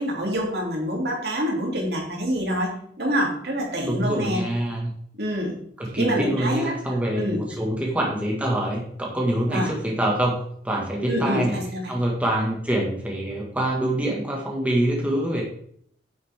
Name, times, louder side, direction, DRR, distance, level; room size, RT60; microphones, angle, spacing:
voice 1, 0.0-2.7 3.0-4.4 5.2-5.5 6.0-6.7 7.2-7.4 9.5-9.7 11.1-12.0, equal, 65° right, -1 dB, 3.0 m, -26 dB
voice 2, 3.8-4.9 5.8-10.4 10.6-11.6 11.9-15.4, right 1 dB, 10° right, -3 dB, 2.0 m, -25 dB
10.5 x 8.3 x 3.7 m, 0.65 s
head